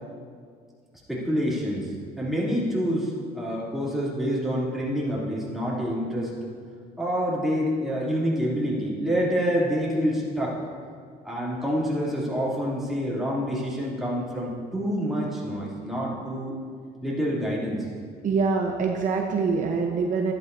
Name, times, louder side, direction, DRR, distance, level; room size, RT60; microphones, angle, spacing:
voice 1, 1.1-6.3 7.0-10.6 11.2-16.6 17.0-17.9, equal, ahead, -7 dB, 2.8 m, -27 dB
voice 2, 18.2-20.3, right 4 dB, 50° right, 1 dB, 0.9 m, -24 dB
12.0 x 11.0 x 2.7 m, 2.1 s
cardioid pair, 110°, 17 cm